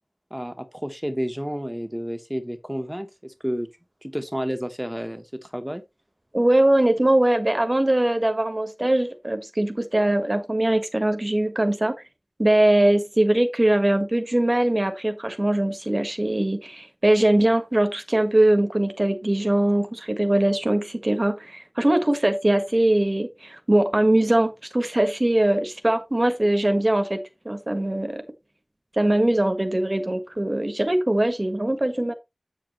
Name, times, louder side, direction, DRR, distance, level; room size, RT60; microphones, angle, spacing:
voice 1, 0.3-3.7 4.0-5.8, equal, 10° right, 1.1 m, -30 dB
voice 2, 6.3-11.9 12.4-28.2 28.9-32.1, right 1 dB, 45° right, 1.4 m, -21 dB
8.2 x 7.8 x 3.1 m
wide cardioid pair, 45°, 0 cm